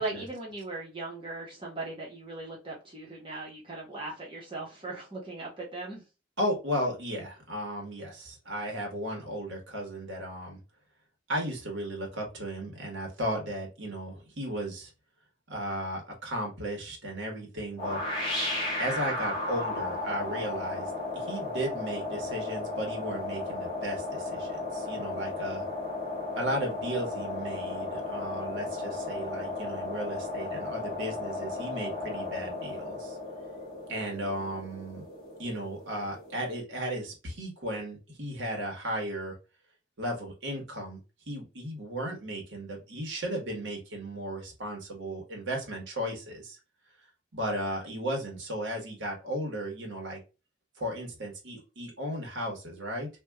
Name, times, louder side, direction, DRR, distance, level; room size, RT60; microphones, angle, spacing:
voice 1, 0.0-6.0, right 2 dB, 25° right, -5 dB, 1.1 m, -38 dB
voice 2, 6.4-10.6 11.3-14.9 15.5-18.0 18.8-25.6 26.4-33.2 33.9-35.1 35.4-39.4 40.0-41.0 41.3-46.6 47.3-50.2 50.8-53.1, equal, 70° right, 0 dB, 1.1 m, -35 dB
Preset Typhoon-Sound C, 17.8-36.6, left 2 dB, 25° left, 1.2 m, -35 dB
3.5 x 2.4 x 2.2 m, 0.30 s
head